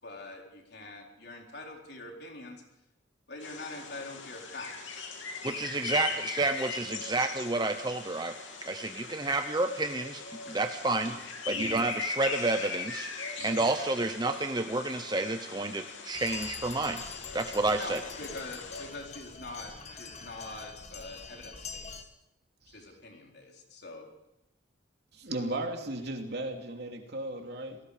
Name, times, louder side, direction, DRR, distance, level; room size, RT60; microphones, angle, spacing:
voice 1, 0.0-2.6 3.3-5.0 6.1-6.3 17.7-22.1 22.7-24.1, left 2 dB, 55° left, 1 dB, 4.2 m, -44 dB
sound 1, 3.4-18.9, left 5 dB, 70° left, 3.3 m, -40 dB
voice 2, 5.4-8.4 8.6-11.2 11.5-13.1 13.4-17.0 17.3-18.0, right 2 dB, 20° right, 7 dB, 0.8 m, -30 dB
voice 3, 11.5-11.8 13.4-13.6 22.7-22.8 25.1-27.8, right 1 dB, 55° right, 3 dB, 3.0 m, -36 dB
sound 2, 16.1-22.0, left 5 dB, 35° left, 1.5 m, -44 dB
29.0 x 19.0 x 5.1 m, 0.85 s
head